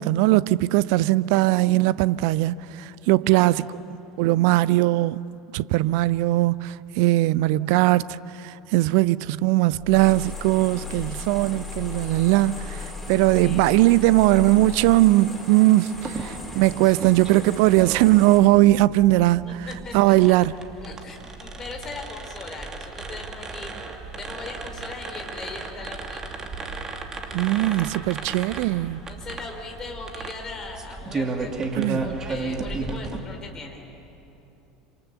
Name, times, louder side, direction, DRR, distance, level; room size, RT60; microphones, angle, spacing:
voice 1, 0.0-3.7 4.2-5.2 5.5-8.1 8.4-12.8 13.1-19.6 19.9-20.5 27.3-29.0 31.7-32.2, right 17 dB, 55° right, 0.5 m, -20 dB
voice 2, 3.2-3.6 13.4-13.7 15.9-16.7 19.4-20.3 20.8-23.7 24.2-26.2 27.8-28.3 29.1-33.8, left 4 dB, 25° left, 5.1 m, -40 dB
sound 1, 9.7-15.0, left 7 dB, 55° left, 2.9 m, -37 dB
sound 2, 9.9-18.4, left 1 dB, 5° left, 5.3 m, -41 dB
sound 3, 15.9-33.2, right 3 dB, 25° right, 2.7 m, -34 dB
28.0 x 27.5 x 7.0 m
figure-of-eight pair, 75°, 2 cm